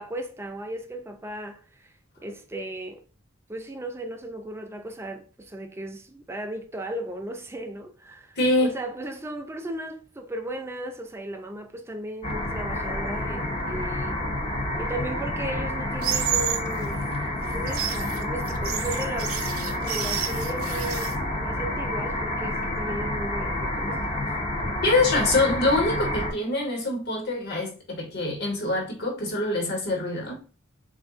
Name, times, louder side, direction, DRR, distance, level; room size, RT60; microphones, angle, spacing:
voice 1, 0.0-1.9 2.2-3.0 3.5-14.2 14.8-17.1 17.5-19.4 19.8-24.3, right 1 dB, 10° right, 0.4 m, -36 dB
voice 2, 8.4-8.8 24.8-30.4, left 2 dB, 55° left, 1.3 m, -25 dB
sound 1, 12.2-26.3, left 1 dB, 30° left, 0.6 m, -29 dB
sound 2, 16.0-16.7 17.5-21.1, right 10 dB, 90° right, 0.5 m, -30 dB
3.9 x 2.5 x 3.5 m
head